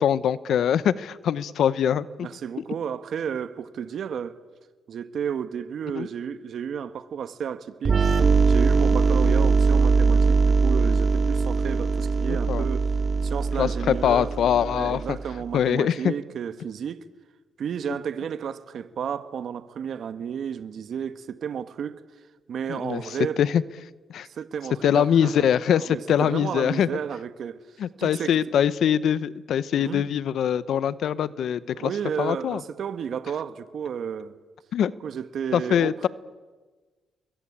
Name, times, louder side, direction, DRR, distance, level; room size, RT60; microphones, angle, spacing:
voice 1, 0.0-2.3 5.9-6.1 9.2-9.3 12.5-12.7 13.6-15.2 15.5-16.1 22.7-23.6 24.1-24.3 24.8-26.9 27.8-31.9 32.2-32.6 34.7-34.9 35.5-36.1, left 9 dB, 70° left, 0.9 m, -23 dB
voice 2, 2.2-4.4 4.9-8.0 8.5-12.9 13.2-14.3 14.6-17.1 17.6-22.0 22.5-23.4 24.3-25.5 25.9-27.6 28.0-28.4 29.7-30.0 31.7-34.3 35.0-36.1, right 8 dB, 60° right, 1.5 m, -32 dB
sound 1, 7.8-15.4, right 4 dB, 40° right, 2.3 m, -21 dB
29.0 x 22.5 x 8.7 m
cardioid pair, 90°, 0 cm